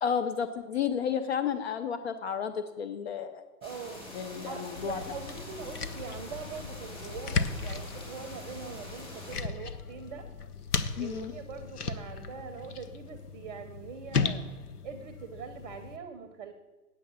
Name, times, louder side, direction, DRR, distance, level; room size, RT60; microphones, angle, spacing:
voice 1, 0.0-3.4 4.1-5.0 11.0-11.3, left 7 dB, 45° left, 8 dB, 0.7 m, -32 dB
sound 1, 3.6-9.4, left 1 dB, 10° left, 3.1 m, -45 dB
voice 2, 3.6-4.1 4.4-10.3 11.0-14.5 14.8-16.5, right 6 dB, 30° right, 9 dB, 0.8 m, -42 dB
sound 2, 4.7-16.0, left 5 dB, 75° left, 1.0 m, -36 dB
9.0 x 7.8 x 7.1 m, 1.2 s
figure-of-eight pair, 125°, 46 cm